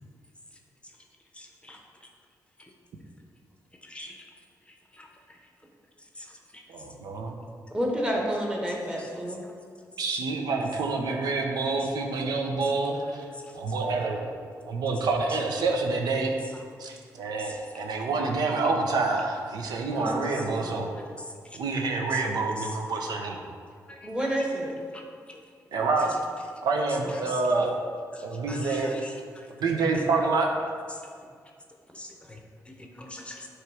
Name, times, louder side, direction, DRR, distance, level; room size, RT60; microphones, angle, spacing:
voice 1, 1.4-1.8 3.9-4.2 5.0-5.1 10.1-10.2 17.4-17.5 23.9-24.0 24.9-25.0 28.1-29.1 31.9-32.4 32.7-33.5, left 1 dB, 15° left, 1 dB, 0.7 m, -43 dB
voice 2, 6.7-7.4 10.0-13.2 13.5-14.3 14.7-16.3 16.8-20.9 21.6-23.4 25.7-26.2 26.6-27.8 28.2-28.9 29.6-30.5, right 3 dB, 80° right, 2 dB, 0.8 m, -27 dB
voice 3, 7.7-9.4 19.9-20.2 24.0-24.7 27.0-27.6, equal, 15° right, -1 dB, 1.2 m, -30 dB
7.6 x 3.2 x 4.8 m, 2.1 s
cardioid pair, 105°, 7 cm